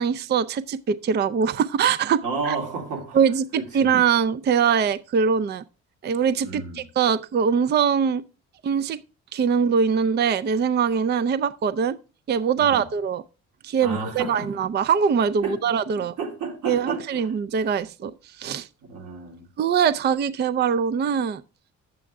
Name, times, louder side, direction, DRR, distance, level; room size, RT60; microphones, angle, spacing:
voice 1, 0.0-2.6 3.1-5.6 6.0-8.2 8.6-9.0 9.3-12.0 12.3-13.2 13.6-16.1 16.7-18.7 19.6-21.4, right 7 dB, 35° right, 0.4 m, -22 dB
voice 2, 2.2-3.2 3.6-3.9 6.4-6.8 12.6-12.8 13.8-14.5 15.4-15.6 16.2-17.3 18.9-19.5, right 4 dB, 80° right, 3.7 m, -31 dB
9.1 x 7.6 x 3.5 m
cardioid pair, 90°, 30 cm